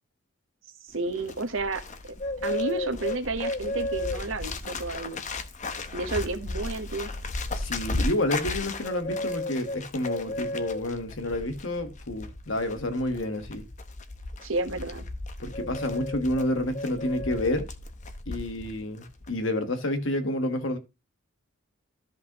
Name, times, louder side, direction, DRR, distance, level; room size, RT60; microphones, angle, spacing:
Bird, 0.9-18.8 19.0-19.3, left 2 dB, 35° left, 0.8 m, -34 dB
voice 1, 0.9-1.8 2.4-5.2 5.9-7.1 14.4-15.0, right 3 dB, 70° right, 1.1 m, -31 dB
voice 2, 7.5-13.6 15.4-17.7 18.3-20.8, left 1 dB, 65° left, 1.4 m, -29 dB
13.5 x 5.3 x 2.9 m
head